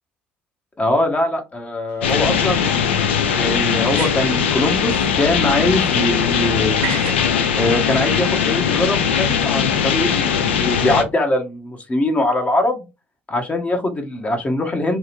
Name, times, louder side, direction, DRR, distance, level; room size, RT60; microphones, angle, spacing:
voice 1, 0.8-2.8 3.3-6.8 7.6-12.8 13.3-15.0, left 1 dB, 25° left, 4 dB, 0.8 m, -22 dB
sound 1, 1.9-2.0 3.8-4.4 6.8-7.3, right 7 dB, 65° right, 0.9 m, -30 dB
sound 2, 2.0-11.0, left 7 dB, 75° left, 0.4 m, -20 dB
2.8 x 2.4 x 2.9 m, 0.25 s
figure-of-eight pair, 55°, 6 cm